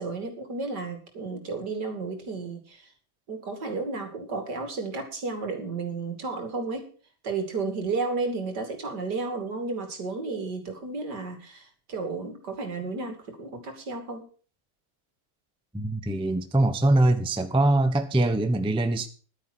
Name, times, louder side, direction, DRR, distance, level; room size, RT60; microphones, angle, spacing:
voice 1, 0.0-2.9 3.3-6.9 7.2-14.2, right 3 dB, 70° right, 3.2 m, -32 dB
voice 2, 15.7-19.1, right 2 dB, 5° right, 0.7 m, -23 dB
11.5 x 9.6 x 6.2 m
omnidirectional pair, 1.9 m